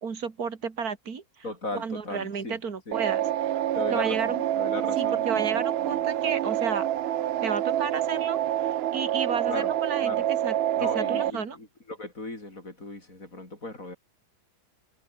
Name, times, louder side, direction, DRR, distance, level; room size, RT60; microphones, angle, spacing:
voice 1, 0.0-1.2 1.7-3.6 3.9-4.4 5.0-6.9 7.4-11.6, right 6 dB, 65° right, 2.7 m, -32 dB
voice 2, 1.4-2.6 2.9-3.0 3.7-6.0 9.5-9.7 10.0-10.3 10.8-14.0, left 2 dB, 55° left, 5.9 m, -37 dB
sound 1, 2.9-11.3, right 12 dB, 90° right, 0.5 m, -27 dB
omnidirectional pair, 1.7 m